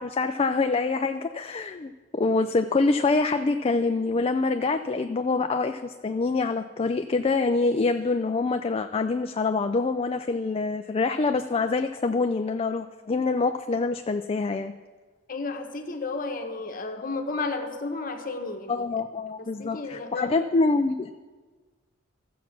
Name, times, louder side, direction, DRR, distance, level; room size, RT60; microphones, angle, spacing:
voice 1, 0.0-14.7 18.7-21.1, left 3 dB, 30° left, 7 dB, 0.4 m, -25 dB
voice 2, 15.3-18.9 19.4-20.3, left 3 dB, 45° left, 5 dB, 1.3 m, -32 dB
14.5 x 7.3 x 6.0 m, 1.4 s
head